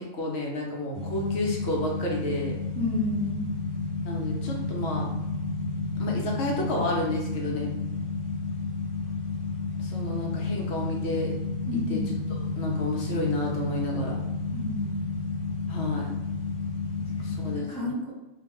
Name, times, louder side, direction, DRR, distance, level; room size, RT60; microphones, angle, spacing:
voice 1, 0.0-2.6 4.1-5.1 6.0-7.7 9.8-11.4 11.9-12.0 12.6-14.2 15.7-16.1 17.1-17.9, left 1 dB, 65° left, -2 dB, 0.8 m, -31 dB
sound 1, 0.9-17.6, left 3 dB, 25° right, 0.5 m, -31 dB
voice 2, 2.7-3.5 11.7-12.1 14.5-15.2 17.0-18.1, left 2 dB, 5° left, -9 dB, 1.0 m, -32 dB
2.4 x 2.2 x 2.9 m, 1.0 s
omnidirectional pair, 1.3 m